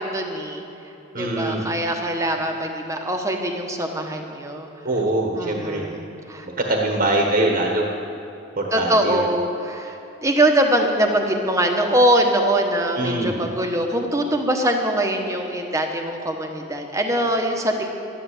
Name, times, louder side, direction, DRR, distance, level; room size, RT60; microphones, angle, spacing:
voice 1, 0.1-0.6 1.2-4.7 5.3-6.5 6.9-7.0 8.7-17.9, right 1 dB, 15° right, 2 dB, 1.2 m, -22 dB
voice 2, 1.1-1.6 4.8-5.9 6.6-7.9 8.6-9.2 13.0-13.4, right 1 dB, 40° right, 1 dB, 1.4 m, -23 dB
12.0 x 10.0 x 8.3 m, 3.0 s
head